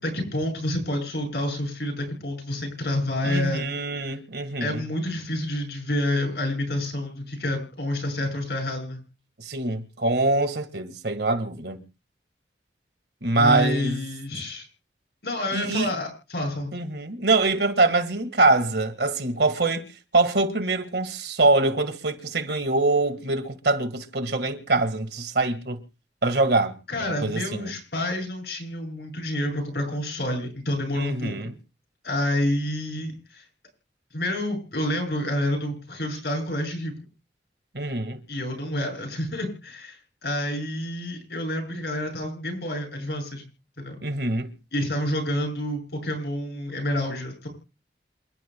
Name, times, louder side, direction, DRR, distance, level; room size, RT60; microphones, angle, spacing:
voice 1, 0.0-3.6 4.6-9.0 13.3-14.7 15.2-16.7 26.9-31.5 32.0-33.4 34.1-36.9 38.3-43.5 43.8-44.0 44.7-47.5, left 1 dB, 65° left, 7.9 m, -28 dB
voice 2, 3.2-4.8 9.4-11.8 13.2-14.0 15.5-15.9 16.7-19.9 20.1-25.8 26.2-26.7 27.0-27.7 30.9-31.5 37.7-38.2 44.0-44.5, right 2 dB, 70° right, 1.8 m, -24 dB
28.0 x 12.0 x 2.3 m
head